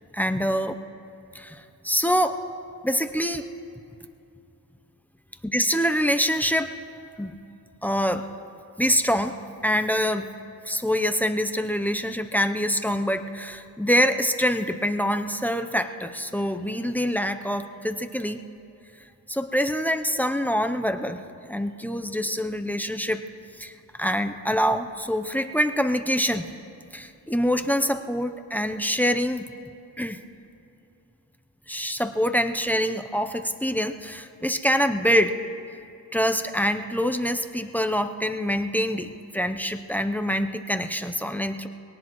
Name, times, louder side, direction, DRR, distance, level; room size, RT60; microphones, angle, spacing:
voice 1, 0.1-0.8 1.3-2.4 2.8-3.4 5.4-6.7 7.2-7.3 7.8-8.3 8.8-9.3 9.6-10.3 10.6-18.4 19.3-21.2 21.5-23.2 23.6-26.4 26.9-29.5 30.0-30.2 31.7-35.4 36.1-41.7, equal, 5° left, 8 dB, 0.6 m, -25 dB
24.0 x 18.5 x 3.0 m, 2.7 s
cardioid pair, 90°, 37 cm